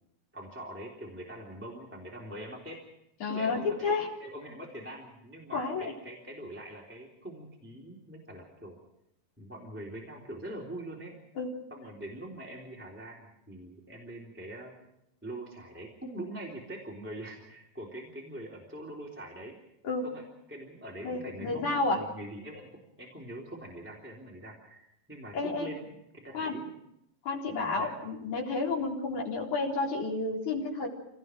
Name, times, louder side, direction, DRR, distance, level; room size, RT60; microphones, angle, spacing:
voice 1, 0.3-2.8 3.3-3.9 4.2-8.8 9.4-11.2 11.7-14.7 15.2-19.6 20.0-20.2 20.5-26.7 27.7-27.9, right 1 dB, 5° right, -3 dB, 3.3 m, -43 dB
voice 2, 3.2-4.1 5.5-5.8 11.4-11.5 19.8-20.1 21.0-22.0 25.3-25.7 26.3-26.6 27.2-30.9, left 3 dB, 70° left, -3 dB, 5.3 m, -31 dB
27.0 x 18.5 x 6.3 m, 0.81 s
omnidirectional pair, 3.5 m